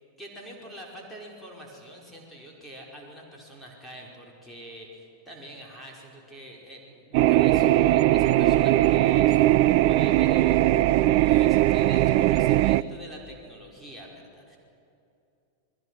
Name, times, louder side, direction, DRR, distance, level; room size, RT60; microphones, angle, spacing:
voice 1, 0.2-10.8 11.0-14.6, equal, ahead, -3 dB, 5.1 m, -45 dB
sound 1, 7.1-12.8, right 15 dB, 45° right, 0.5 m, -20 dB
30.0 x 21.5 x 6.4 m, 2.6 s
figure-of-eight pair, 90°, 0 cm